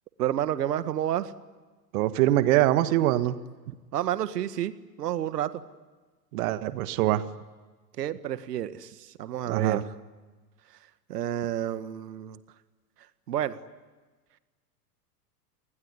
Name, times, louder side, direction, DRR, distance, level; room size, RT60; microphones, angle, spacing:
voice 1, 0.2-1.3 3.9-4.7 5.0-5.6 8.0-9.9 10.7-10.8 11.1-12.4 13.3-13.6, right 11 dB, 70° right, 12 dB, 1.8 m, -30 dB
voice 2, 1.9-3.4 6.3-7.2 9.5-9.8, right 14 dB, 55° right, 12 dB, 1.7 m, -23 dB
29.5 x 20.5 x 9.9 m, 1.3 s
hypercardioid pair, 105°, 49 cm